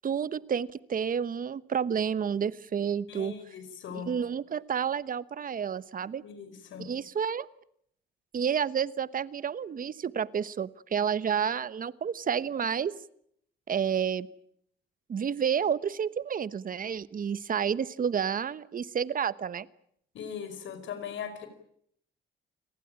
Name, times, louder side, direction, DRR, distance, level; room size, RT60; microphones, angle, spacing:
voice 1, 0.0-3.3 4.1-6.2 6.8-7.5 8.3-12.9 13.7-14.3 15.1-19.7, right 7 dB, 45° right, 17 dB, 1.1 m, -30 dB
voice 2, 3.1-4.1 6.2-6.9 20.1-21.5, left 7 dB, 75° left, 11 dB, 5.0 m, -39 dB
29.0 x 19.0 x 8.9 m, 0.69 s
cardioid pair, 90°, 20 cm